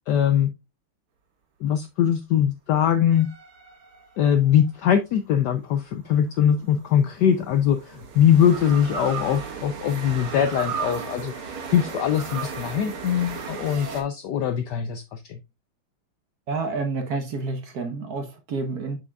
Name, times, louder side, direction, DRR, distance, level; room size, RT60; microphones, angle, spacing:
voice 1, 0.1-0.5 1.6-3.3 4.2-15.4, left 9 dB, 90° left, 0.9 m, -22 dB
sound 1, 3.1-4.6 6.5-14.0, right 6 dB, 75° right, 2.0 m, -35 dB
voice 2, 16.5-19.0, right 3 dB, 55° right, 1.3 m, -29 dB
6.9 x 6.0 x 2.3 m
omnidirectional pair, 2.4 m